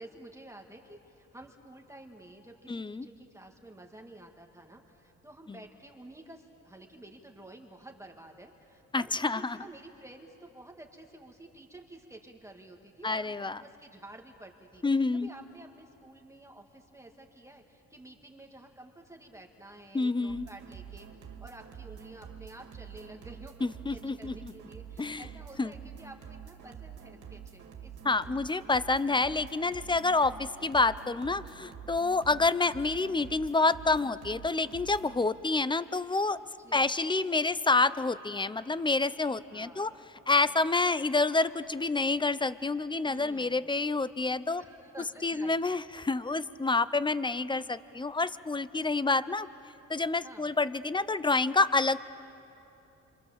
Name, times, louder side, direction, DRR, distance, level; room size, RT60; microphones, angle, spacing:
voice 1, 0.0-21.1 21.4-28.1 28.4-28.6 32.3-32.5 36.6-36.9 39.5-40.6 43.1-43.9 44.6-45.6 45.9-46.0 50.2-50.6, right 1 dB, 10° right, 2 dB, 2.0 m, -51 dB
voice 2, 2.7-3.1 5.5-5.6 8.9-9.6 13.0-13.6 14.8-15.3 19.9-20.5 23.6-24.5 25.0-25.2 25.6-25.7 28.0-36.4 36.7-39.9 40.3-44.6 45.2-49.5 49.9-52.0, left 3 dB, 15° left, 16 dB, 0.7 m, -28 dB
sound 1, 20.3-35.3, right 8 dB, 75° right, 2.3 m, -47 dB
26.0 x 26.0 x 7.3 m, 2.9 s
cardioid pair, 90°, 30 cm